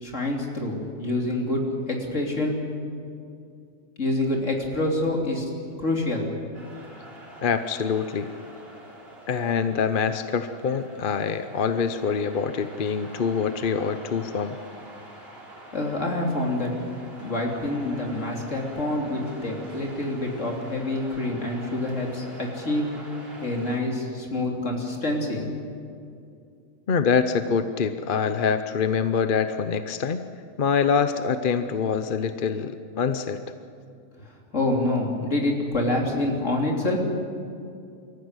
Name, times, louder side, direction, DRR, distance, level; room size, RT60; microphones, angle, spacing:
voice 1, 0.0-2.7 4.0-5.5 5.8-6.3 15.7-16.7 17.2-22.9 23.4-25.5 34.5-37.0, left 2 dB, 65° left, 0 dB, 3.5 m, -26 dB
sound 1, 6.5-23.8, right 1 dB, 45° right, 3.8 m, -45 dB
voice 2, 7.4-8.3 9.3-14.6 26.9-30.2 30.6-33.4, left 6 dB, 45° left, 10 dB, 0.9 m, -25 dB
25.0 x 14.5 x 9.7 m, 2.4 s
omnidirectional pair, 1.4 m